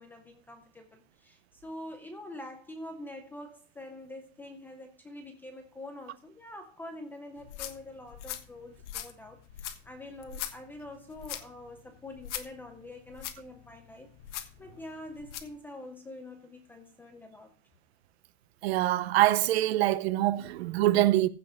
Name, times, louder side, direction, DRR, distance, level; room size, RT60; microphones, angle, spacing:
voice 1, 0.0-14.1 14.6-17.5, left 1 dB, 5° left, 0.4 m, -45 dB
sound 1, 7.4-15.6, left 11 dB, 65° left, 1.4 m, -43 dB
voice 2, 18.6-21.3, right 15 dB, 55° right, 0.7 m, -24 dB
15.5 x 5.8 x 4.9 m
supercardioid pair, 165°, 38 cm